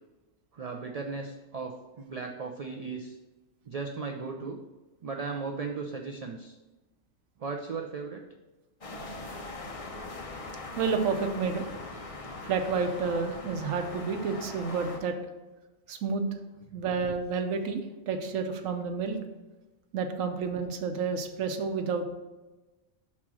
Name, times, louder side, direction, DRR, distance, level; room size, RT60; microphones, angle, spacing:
voice 1, 0.5-3.2 3.7-4.6 5.0-6.6 7.4-8.2, right 4 dB, 55° right, 3 dB, 0.4 m, -36 dB
sound 1, 8.8-15.0, left 2 dB, 35° left, 0.7 m, -41 dB
voice 2, 10.8-11.7 12.5-15.2 15.9-16.2 16.7-19.2 19.9-22.0, right 5 dB, 85° right, 5 dB, 1.1 m, -30 dB
6.0 x 4.3 x 6.1 m, 1.1 s
omnidirectional pair, 1.3 m